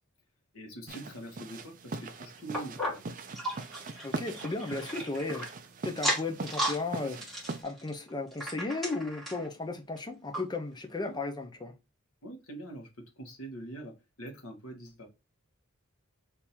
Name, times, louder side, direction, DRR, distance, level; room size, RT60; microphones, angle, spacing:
voice 1, 0.5-3.0 11.0-11.2 12.2-15.1, right 2 dB, 80° left, 1.5 m, -44 dB
sound 1, 0.9-7.6, right 3 dB, 40° right, 0.5 m, -41 dB
sound 2, 2.5-5.5 5.9-6.8 7.1-9.5 10.0-10.1 10.3-10.4 11.1-11.2, equal, ahead, 1.5 m, -35 dB
voice 2, 4.0-5.5 5.8-7.2 7.6-11.7, left 3 dB, 20° left, 0.6 m, -35 dB
3.6 x 2.9 x 4.3 m
head